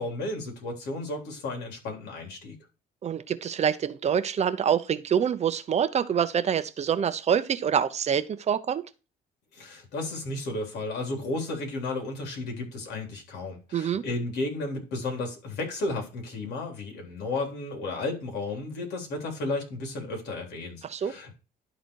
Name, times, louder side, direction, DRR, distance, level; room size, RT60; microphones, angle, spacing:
voice 1, 0.0-2.6 9.5-21.3, left 2 dB, 75° left, 3.5 m, -33 dB
voice 2, 3.0-8.8 13.7-14.0 20.8-21.1, right 8 dB, 40° right, 0.8 m, -26 dB
11.5 x 4.0 x 4.7 m
cardioid pair, 110°, 17 cm